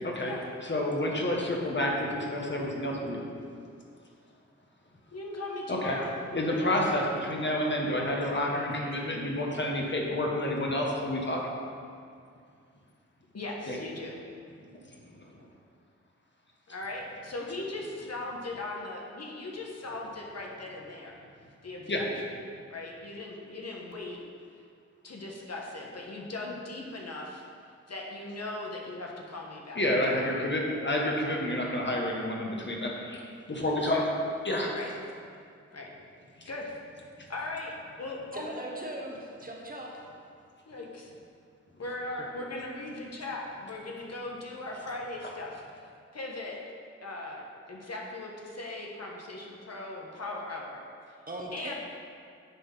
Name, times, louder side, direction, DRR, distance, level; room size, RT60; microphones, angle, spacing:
voice 1, 0.0-0.3 0.6-3.3 5.7-6.0 6.3-11.4 13.7-13.8 14.7-14.8 15.2-15.3 21.9-22.0 29.7-34.0 34.4-34.8 36.4-36.5, left 1 dB, 40° left, -1 dB, 1.6 m, -29 dB
voice 2, 5.1-6.1 13.3-14.2 16.7-21.1 21.6-22.3 22.7-24.2 25.0-27.4 27.9-29.8 30.1-30.4 31.0-31.4 33.9-34.1 34.7-34.9 35.7-35.9 36.5-36.7 37.3-37.7 38.0-38.5 40.7-41.1 41.8-46.6 47.0-50.8 51.1-51.2 51.5-51.7, left 2 dB, 60° left, -1 dB, 1.3 m, -39 dB
voice 3, 38.3-40.0 51.3-51.7, right 1 dB, 30° right, -1 dB, 1.4 m, -39 dB
9.7 x 3.7 x 5.8 m, 2.3 s
cardioid pair, 50°, 29 cm